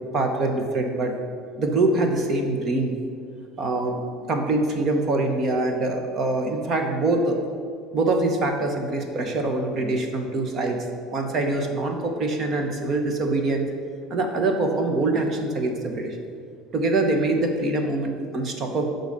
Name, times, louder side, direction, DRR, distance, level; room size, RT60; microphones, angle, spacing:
voice 1, 0.1-1.1 1.6-3.0 3.6-4.0 4.3-7.4 7.9-10.9 11.1-13.7 14.1-16.2 16.7-18.9, right 2 dB, 30° right, 4 dB, 0.9 m, -24 dB
10.5 x 3.9 x 6.6 m, 2.2 s
cardioid pair, 175°, 0 cm